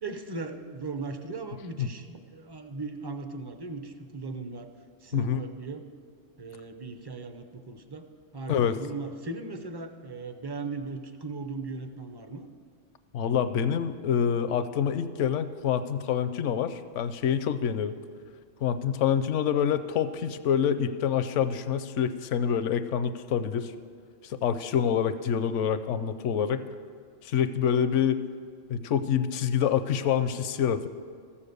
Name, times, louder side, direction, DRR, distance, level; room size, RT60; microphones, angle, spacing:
voice 1, 0.0-4.7 5.0-5.8 6.4-8.0 8.3-12.5, right 3 dB, 30° right, 7 dB, 0.5 m, -38 dB
voice 2, 8.5-8.8 13.1-18.0 18.6-23.7 24.2-26.6 27.2-28.2 28.7-30.9, left 8 dB, 75° left, 12 dB, 0.9 m, -26 dB
14.5 x 7.2 x 6.7 m, 2.2 s
omnidirectional pair, 1.3 m